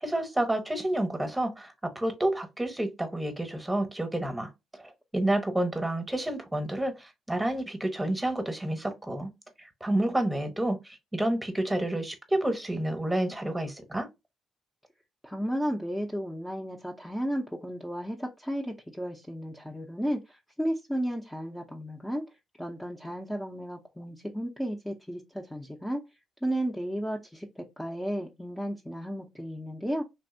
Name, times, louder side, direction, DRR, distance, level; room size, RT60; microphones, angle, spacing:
voice 1, 0.0-9.3 9.6-14.1, right 1 dB, 10° right, 1.0 m, -29 dB
voice 2, 15.2-22.2 22.6-26.0 26.4-30.0, equal, 5° left, 0.6 m, -33 dB
3.3 x 2.6 x 2.6 m
cardioid pair, 90°, 0 cm